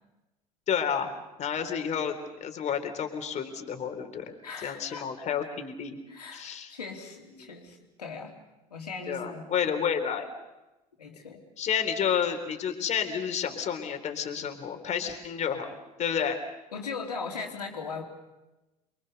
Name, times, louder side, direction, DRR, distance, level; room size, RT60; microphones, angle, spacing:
voice 1, 0.7-1.1 1.4-4.3 4.6-6.0 6.3-6.7 7.3-7.5 9.1-10.3 11.6-16.4, left 7 dB, 35° left, 6 dB, 3.8 m, -30 dB
voice 2, 4.4-5.1 6.1-8.3 8.7-9.9 11.0-11.4 16.7-18.0, left 4 dB, 75° left, 2 dB, 3.6 m, -39 dB
28.5 x 24.0 x 6.8 m, 1.0 s
figure-of-eight pair, 70°, 20 cm